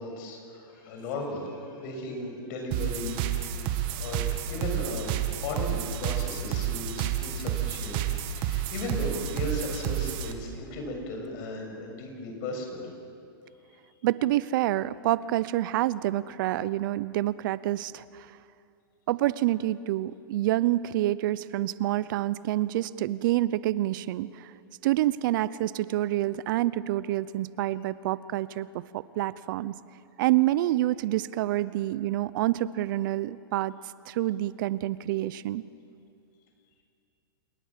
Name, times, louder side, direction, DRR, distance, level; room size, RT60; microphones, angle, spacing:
voice 1, 0.0-5.1 5.4-8.0 8.4-12.9, left 2 dB, 50° left, 3 dB, 7.1 m, -36 dB
sound 1, 2.7-10.3, right 10 dB, 40° right, 1.9 m, -30 dB
voice 2, 14.0-18.3 19.1-24.5 24.8-29.7 30.2-33.7 34.1-35.6, right 15 dB, 55° right, 18 dB, 0.7 m, -27 dB
27.5 x 21.5 x 7.6 m, 2.5 s
hypercardioid pair, 140°, 13 cm